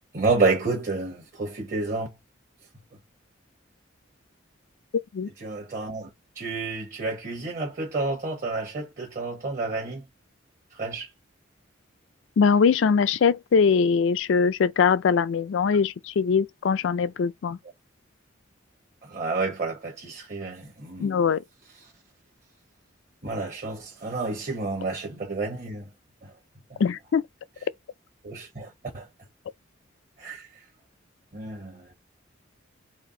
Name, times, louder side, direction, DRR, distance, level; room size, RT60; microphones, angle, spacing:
voice 1, 0.1-2.1 5.4-6.1 6.3-10.0 10.8-11.1 19.0-21.1 23.2-25.9 26.2-26.3 26.7-26.8 28.2-29.1 30.2-30.5 31.3-31.9, right 3 dB, 45° right, 1.0 m, -29 dB
voice 2, 12.4-17.6 21.0-21.4 26.8-27.2, left 6 dB, 75° left, 0.4 m, -22 dB
4.1 x 2.4 x 3.8 m
head